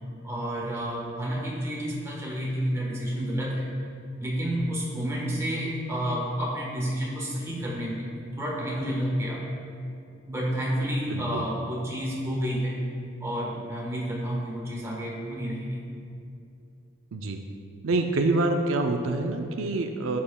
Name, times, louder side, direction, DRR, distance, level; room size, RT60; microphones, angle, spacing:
voice 1, 0.2-3.7 4.2-8.1 8.4-9.4 10.3-12.8 13.2-15.8, equal, 15° right, -4 dB, 1.2 m, -30 dB
voice 2, 11.1-11.4 17.1-17.4 17.8-20.2, right 2 dB, 75° right, 4 dB, 0.5 m, -26 dB
11.0 x 7.5 x 2.3 m, 2.6 s
head